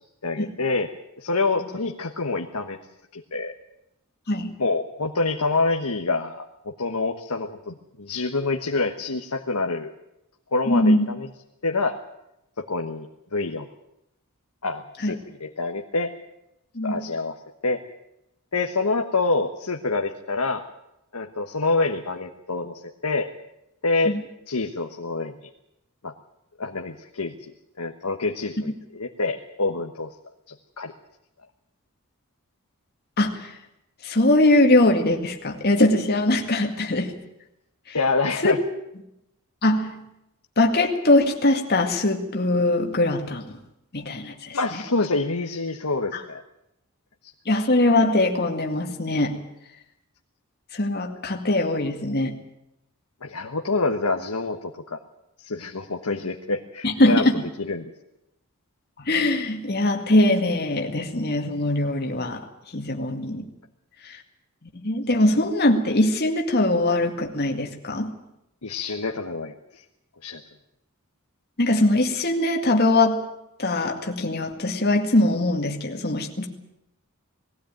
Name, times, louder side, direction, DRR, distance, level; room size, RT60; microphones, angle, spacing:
voice 1, 0.2-0.9 1.2-2.8 3.1-3.5 4.6-9.9 10.5-11.3 11.6-12.0 12.6-13.7 14.6-16.1 16.8-17.4 17.6-17.8 18.5-20.6 21.1-23.3 23.8-24.2 24.5-25.3 26.0-26.1 26.6-27.5 27.8-30.1 30.5-30.9 37.9-38.6 44.5-46.4 53.2-55.0 55.4-57.3 57.6-57.9 68.6-69.8 70.2-70.4, left 3 dB, 90° left, 4 dB, 1.3 m, -26 dB
voice 2, 10.7-11.1 15.0-15.2 16.7-17.1 24.1-24.2 33.2-33.5 34.0-37.1 37.9-38.0 38.4-38.5 39.6-40.1 40.6-43.4 43.9-44.8 46.1-46.2 47.5-49.4 50.7-52.4 56.8-57.4 59.0-62.4 62.7-63.5 64.0-64.2 64.6-68.2 71.6-73.3 73.6-76.5, left 1 dB, 45° left, 3 dB, 2.2 m, -22 dB
20.0 x 15.5 x 9.1 m, 0.85 s
head